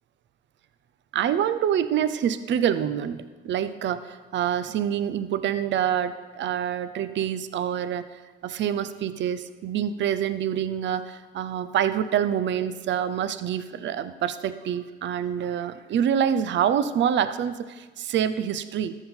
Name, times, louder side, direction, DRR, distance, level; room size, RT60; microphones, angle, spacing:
voice 1, 1.1-19.0, right 9 dB, 65° right, 12 dB, 0.6 m, -26 dB
13.0 x 6.0 x 4.4 m, 1.4 s
cardioid pair, 90°, 20 cm